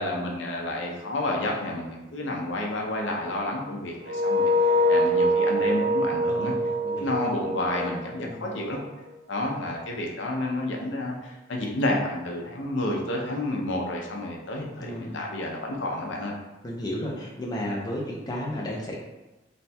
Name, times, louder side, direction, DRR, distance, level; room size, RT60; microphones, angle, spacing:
voice 1, 0.0-4.5 4.9-6.5 7.0-8.8 9.3-16.3, left 1 dB, 75° left, 0 dB, 0.6 m, -30 dB
sound 1, 4.0-8.9, equal, 55° right, 0.5 m, -24 dB
voice 2, 6.2-7.4 8.1-8.6 14.8-15.2 16.6-18.9, left 1 dB, 20° left, -3 dB, 0.5 m, -34 dB
3.3 x 2.2 x 4.1 m, 1.1 s
head